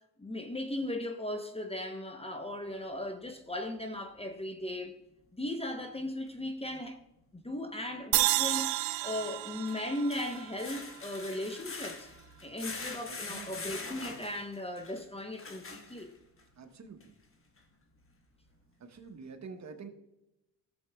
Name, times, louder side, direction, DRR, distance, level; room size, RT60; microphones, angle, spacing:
voice 1, 0.2-5.0 5.3-7.0 7.3-8.7 9.0-12.1 12.4-16.1, left 1 dB, 15° left, 0.9 m, -37 dB
sound 1, 6.3-6.4 8.8-16.4 17.0-17.1 17.6-17.7, left 3 dB, 30° left, 1.3 m, -44 dB
sound 2, 8.1-11.4, right 16 dB, 80° right, 0.6 m, -31 dB
voice 2, 12.7-13.6 16.6-17.1 18.8-19.9, right 5 dB, 40° right, 1.1 m, -47 dB
13.5 x 7.2 x 2.3 m
supercardioid pair, 70°, 42 cm